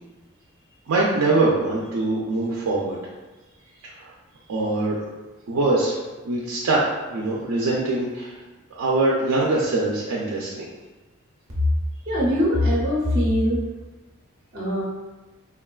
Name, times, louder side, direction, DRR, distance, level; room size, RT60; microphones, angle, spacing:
voice 1, 0.9-3.0 3.8-4.1 4.5-5.0 5.5-6.0 6.3-6.8 7.1-8.4 8.8-10.7, right 2 dB, 90° right, -4 dB, 0.4 m, -23 dB
voice 2, 12.1-13.6 14.5-14.8, left 1 dB, 40° right, -5 dB, 0.5 m, -21 dB
3.5 x 2.2 x 2.3 m, 1.2 s
head